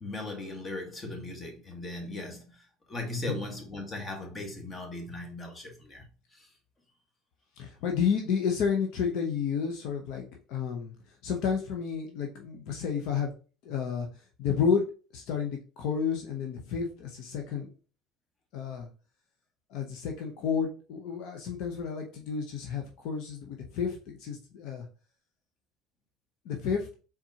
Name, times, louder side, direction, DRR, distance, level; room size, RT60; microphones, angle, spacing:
voice 1, 0.0-6.5, left 2 dB, 30° left, 1.5 m, -38 dB
voice 2, 7.6-10.9 11.2-13.3 13.6-14.1 14.4-14.9 15.1-17.7 18.5-18.9 19.7-24.9 26.4-26.9, left 6 dB, 65° left, 0.8 m, -31 dB
4.3 x 3.7 x 2.8 m
supercardioid pair, 85°, 0 cm